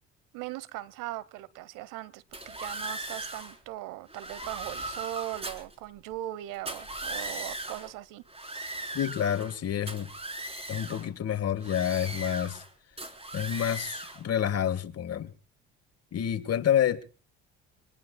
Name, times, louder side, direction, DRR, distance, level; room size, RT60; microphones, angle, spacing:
voice 1, 0.3-8.2, right 15 dB, 75° right, 1.2 m, -39 dB
sound 1, 2.3-3.6 4.1-5.7 6.5-7.9 8.3-9.6 9.9-11.1 11.6-12.7 13.0-14.2, right 1 dB, 20° right, 4.2 m, -38 dB
voice 2, 8.9-10.1 10.7-12.6 13.3-15.3 16.1-17.0, left 9 dB, 50° left, 1.7 m, -28 dB
26.5 x 20.5 x 2.3 m
hypercardioid pair, 60°, 32 cm